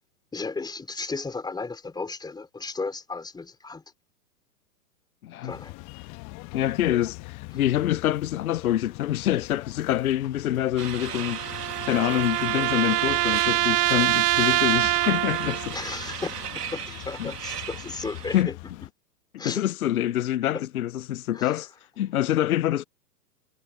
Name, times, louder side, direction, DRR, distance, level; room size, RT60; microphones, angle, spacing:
voice 1, 0.3-3.8 5.4-5.8 15.7-18.6 19.4-19.7 20.5-20.7 21.3-21.6, left 3 dB, 10° left, 3.4 m, -35 dB
sound 1, 5.5-18.9, left 30 dB, 30° left, 1.5 m, -42 dB
voice 2, 6.5-15.7 17.2-17.3 18.3-18.5 19.3-21.7 22.0-22.8, left 12 dB, 60° left, 0.8 m, -26 dB
sound 2, 10.8-18.4, right 8 dB, 70° right, 2.3 m, -37 dB
sound 3, 11.0-15.7, right 25 dB, 30° right, 1.3 m, -25 dB
figure-of-eight pair, 110°, 49 cm